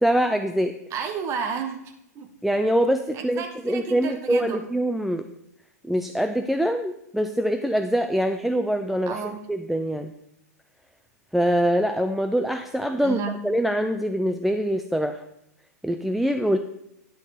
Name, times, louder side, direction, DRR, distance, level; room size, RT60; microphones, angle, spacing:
voice 1, 0.0-0.7 2.4-5.2 5.8-9.2 9.5-10.1 11.3-15.2 15.8-16.6, equal, ahead, 6 dB, 0.4 m, -24 dB
voice 2, 0.9-2.3 3.1-4.7 9.1-9.5 13.0-13.5, right 6 dB, 30° right, 6 dB, 1.3 m, -32 dB
10.5 x 4.4 x 5.8 m, 0.81 s
hypercardioid pair, 105°, 9 cm